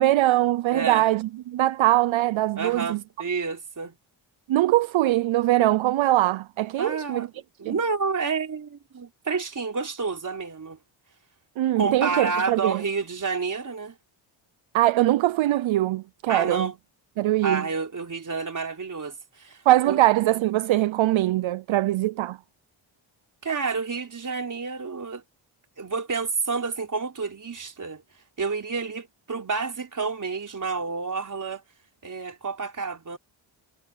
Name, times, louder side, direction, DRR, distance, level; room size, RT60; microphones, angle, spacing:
voice 1, 0.0-3.0 4.5-7.3 7.7-7.8 11.6-12.8 14.7-16.7 17.2-17.7 19.7-22.4, right 15 dB, 70° right, 0.6 m, -22 dB
voice 2, 0.7-1.0 2.6-4.0 6.8-7.3 7.6-10.8 11.8-14.0 16.3-16.7 17.4-19.6 19.9-20.0 23.4-25.2 25.8-28.0 28.4-31.6 32.0-33.2, right 4 dB, 40° right, 4.5 m, -29 dB
wide cardioid pair, 120°, 49 cm